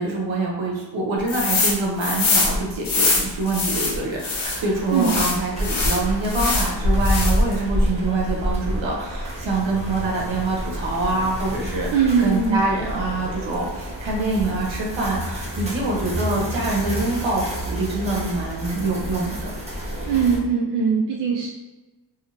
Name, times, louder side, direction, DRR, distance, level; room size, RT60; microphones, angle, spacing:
voice 1, 0.0-19.5, right 2 dB, 80° right, -2 dB, 1.0 m, -25 dB
sound 1, 1.3-1.7 2.0-4.6 5.0-6.7 7.0-7.5, left 3 dB, 85° left, 0.9 m, -23 dB
sound 2, 4.4-20.4, equal, 15° right, 0.7 m, -28 dB
voice 2, 11.9-12.6 20.1-21.5, right 6 dB, 60° right, -2 dB, 0.5 m, -20 dB
3.2 x 3.0 x 2.5 m, 1.1 s
wide cardioid pair, 105°, 46 cm